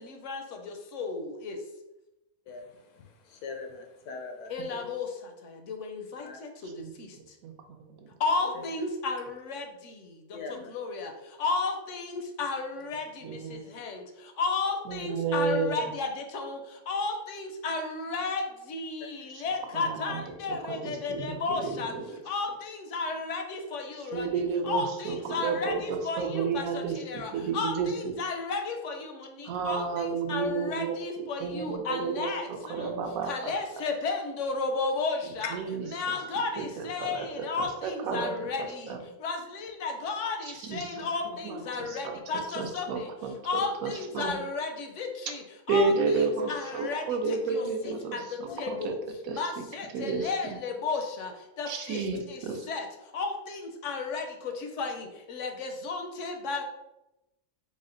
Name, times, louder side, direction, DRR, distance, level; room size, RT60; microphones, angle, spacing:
voice 1, 0.0-1.6 4.5-7.2 8.2-22.0 22.2-24.3 24.6-33.0 33.3-35.5 35.9-43.1 43.4-49.0 49.3-56.6, left 4 dB, 65° left, 4 dB, 0.8 m, -34 dB
voice 2, 2.5-4.9 6.2-6.4 8.4-8.6 10.3-10.7 48.5-48.6, left 4 dB, 80° left, 3 dB, 1.1 m, -42 dB
voice 3, 6.8-8.1 13.2-13.6 14.9-15.9 19.3-19.4 19.7-20.2 20.5-22.0 24.1-27.0 27.3-28.1 29.4-33.5 35.2-36.2 36.6-38.3 38.9-39.0 40.4-41.1 41.4-42.2 42.6-44.4 45.7-48.9 49.2-49.6 49.9-50.3 51.7-52.6, right 4 dB, 75° right, 4 dB, 1.0 m, -32 dB
4.2 x 2.1 x 3.7 m, 0.93 s
omnidirectional pair, 1.6 m